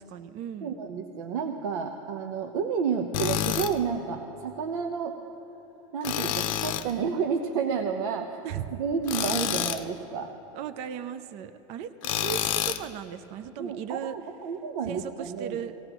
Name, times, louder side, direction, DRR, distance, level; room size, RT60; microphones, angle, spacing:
voice 1, 0.0-0.7 8.4-8.8 10.5-14.3 14.8-15.7, right 9 dB, 40° right, 11 dB, 0.5 m, -37 dB
voice 2, 0.6-5.1 5.9-8.3 8.8-10.3 13.6-15.6, right 6 dB, 85° right, 3 dB, 0.9 m, -30 dB
Tools, 3.1-3.7 6.0-6.9 9.1-9.8 12.0-12.9, left 11 dB, 70° left, 0.6 m, -28 dB
18.5 x 17.5 x 3.0 m, 3.0 s
supercardioid pair, 155°, 17 cm